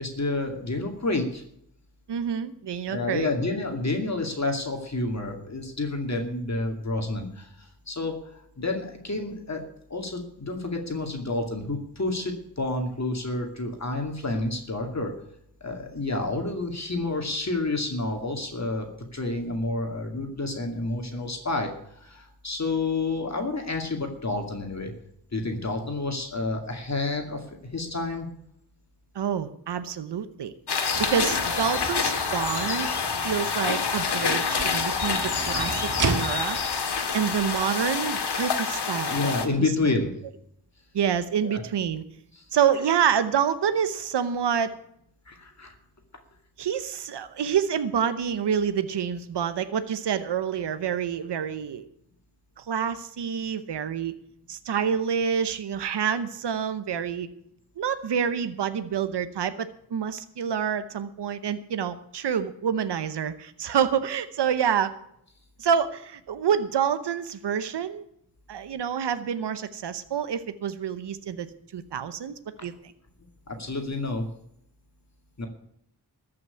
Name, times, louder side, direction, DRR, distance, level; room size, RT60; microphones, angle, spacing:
voice 1, 0.0-1.4 2.9-9.6 9.9-15.1 15.6-24.9 25.3-28.3 39.1-40.1 41.4-41.6 42.3-42.4 45.3-45.7 73.5-74.3 75.4-75.5, left 2 dB, 40° left, 3 dB, 2.4 m, -29 dB
voice 2, 2.1-3.3 29.1-30.5 31.0-32.9 33.2-35.8 36.1-36.6 37.1-39.3 39.6-39.7 40.9-42.0 42.5-44.7 46.6-51.8 52.6-54.1 54.5-57.3 57.8-64.9 65.6-68.0 68.5-71.5 71.7-72.3 72.6-72.7, right 8 dB, 85° right, 12 dB, 0.9 m, -27 dB
sound 1, 30.7-39.5, left 5 dB, 75° left, 2.0 m, -27 dB
sound 2, 30.9-38.4, right 3 dB, 50° right, 1.6 m, -35 dB
14.0 x 6.2 x 9.5 m, 0.72 s
cardioid pair, 60°, 40 cm